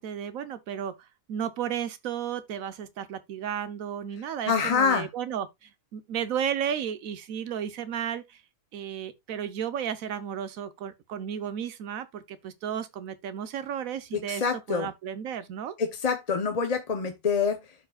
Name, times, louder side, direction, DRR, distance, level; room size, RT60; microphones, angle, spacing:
voice 1, 0.0-8.4 8.7-15.7, right 9 dB, 80° right, 1.2 m, -33 dB
voice 2, 4.5-5.1 14.3-14.9 15.8-17.6, left 6 dB, 40° left, 0.6 m, -26 dB
13.0 x 4.7 x 2.3 m
omnidirectional pair, 1.4 m